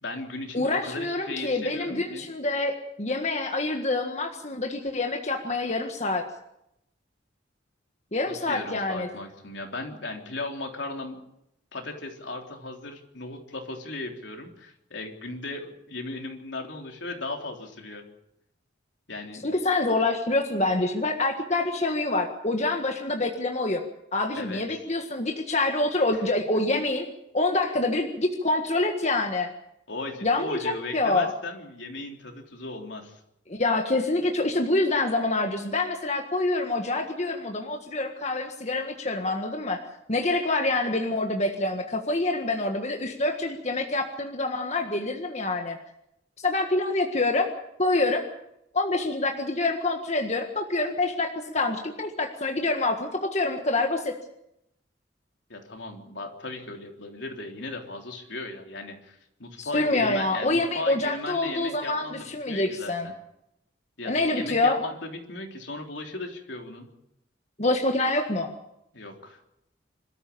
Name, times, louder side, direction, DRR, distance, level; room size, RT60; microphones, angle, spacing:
voice 1, 0.0-2.3 8.3-11.2 11.7-18.0 19.1-19.4 24.3-24.6 26.1-26.2 26.5-26.6 29.9-33.2 55.5-63.1 64.0-66.9 68.9-69.4, left 2 dB, 75° left, 2 dB, 3.5 m, -37 dB
voice 2, 0.5-6.2 8.1-9.1 19.4-23.8 24.1-27.0 27.3-29.5 30.2-31.3 33.5-39.8 40.1-45.8 46.4-47.5 47.8-48.2 48.7-54.1 59.6-63.1 64.1-64.8 67.6-68.5, left 2 dB, 35° left, 3 dB, 1.7 m, -26 dB
26.5 x 13.5 x 8.5 m, 0.81 s
head